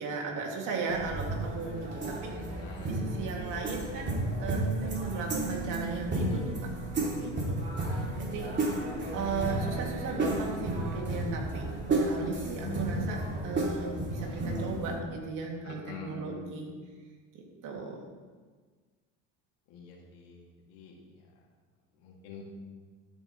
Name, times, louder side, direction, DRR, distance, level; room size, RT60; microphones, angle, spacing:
voice 1, 0.0-2.3 2.8-6.7 7.2-7.6 7.9-16.7 17.3-18.0, right 4 dB, 60° right, 0 dB, 2.5 m, -36 dB
sound 1, 0.9-15.0, right 2 dB, 30° right, 2.9 m, -32 dB
voice 2, 2.6-3.0 7.8-8.3 15.6-16.2 19.7-20.4 20.7-21.0 22.0-22.4, left 5 dB, 85° left, -1 dB, 2.5 m, -46 dB
13.0 x 8.7 x 3.2 m, 1.4 s
supercardioid pair, 110°, 35 cm